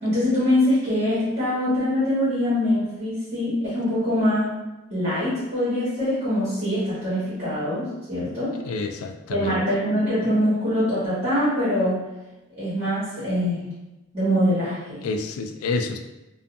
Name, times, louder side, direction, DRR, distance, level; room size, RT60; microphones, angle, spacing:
voice 1, 0.0-4.5 4.9-8.5 9.3-12.0 12.6-13.6 14.1-15.0, left 1 dB, 35° right, -13 dB, 1.3 m, -23 dB
voice 2, 8.6-9.6 15.0-16.0, left 3 dB, 85° left, 10 dB, 0.3 m, -28 dB
2.5 x 2.3 x 2.5 m, 1.0 s
head